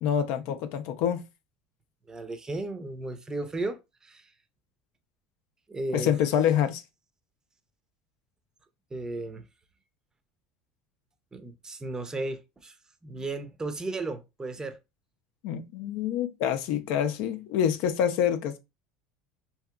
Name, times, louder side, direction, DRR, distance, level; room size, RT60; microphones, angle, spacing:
voice 1, 0.0-1.2 5.9-6.8 15.4-18.6, left 9 dB, 65° left, 0.5 m, -26 dB
voice 2, 2.1-4.3 5.7-6.1 8.9-9.4 11.3-12.7 13.0-14.8, right 2 dB, 20° right, 0.5 m, -35 dB
2.8 x 2.8 x 2.3 m
hypercardioid pair, 85°, 4 cm